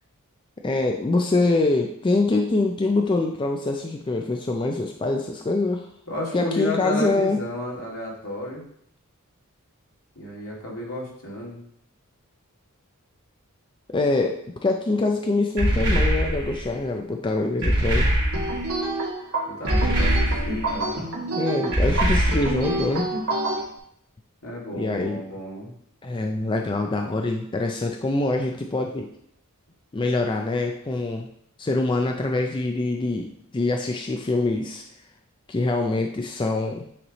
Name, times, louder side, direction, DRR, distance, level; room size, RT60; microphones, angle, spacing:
voice 1, 0.6-5.9 6.3-7.4 13.9-18.1 21.3-23.1 24.7-25.2 26.0-29.1 29.9-31.3 31.6-34.8 35.5-36.8, left 2 dB, 20° left, 3 dB, 0.4 m, -24 dB
voice 2, 6.1-8.7 10.2-11.6 19.5-21.1 24.4-25.7, left 1 dB, 75° left, -4 dB, 2.1 m, -32 dB
sound 1, 15.6-16.7 17.6-18.7 19.7-20.8 21.7-22.8, right 1 dB, 50° right, 2.3 m, -22 dB
sound 2, 18.3-23.6, right 2 dB, 90° right, 1.8 m, -28 dB
8.7 x 3.3 x 4.0 m, 0.67 s
head